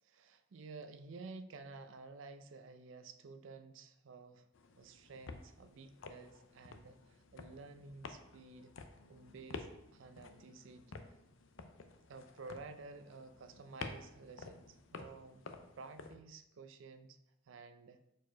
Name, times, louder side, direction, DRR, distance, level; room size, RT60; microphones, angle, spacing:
voice 1, 0.0-4.5 4.8-8.7 9.1-10.9 12.1-17.2 17.5-18.0, right 3 dB, 80° right, 10 dB, 0.5 m, -52 dB
sound 1, 4.5-16.2, left 4 dB, 85° left, 0.6 m, -51 dB
4.6 x 4.6 x 4.6 m, 0.82 s
head